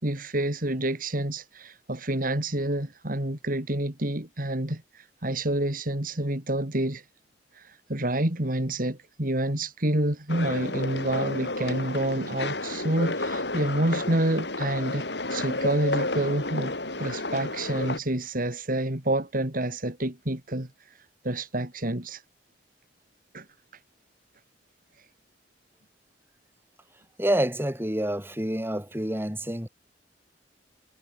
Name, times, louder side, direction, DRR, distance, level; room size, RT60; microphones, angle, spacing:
voice 1, 0.0-7.0 7.5-16.7 17.0-20.7 21.2-22.2 23.3-23.4, right 1 dB, 50° right, 3.2 m, -28 dB
sound 1, 10.3-18.0, left 2 dB, 70° left, 7.5 m, -31 dB
voice 2, 27.2-29.7, right 1 dB, 15° right, 6.4 m, -27 dB
head